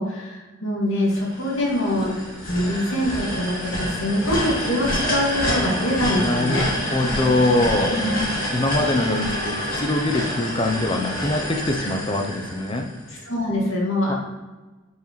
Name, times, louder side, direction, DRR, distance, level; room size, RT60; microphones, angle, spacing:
voice 1, 0.0-6.7 7.9-8.1 11.8-11.9 13.1-14.1, left 1 dB, 60° left, -3 dB, 2.2 m, -24 dB
sound 1, 1.1-13.2, equal, 40° left, 2.3 m, -28 dB
Wind instrument woodwind instrument, 3.9-7.4 7.7-11.9, right 1 dB, 70° right, 1.1 m, -38 dB
voice 2, 6.2-8.0 8.5-12.9 14.1-14.2, left 2 dB, 25° left, 4 dB, 0.6 m, -23 dB
8.8 x 5.7 x 3.1 m, 1.2 s
head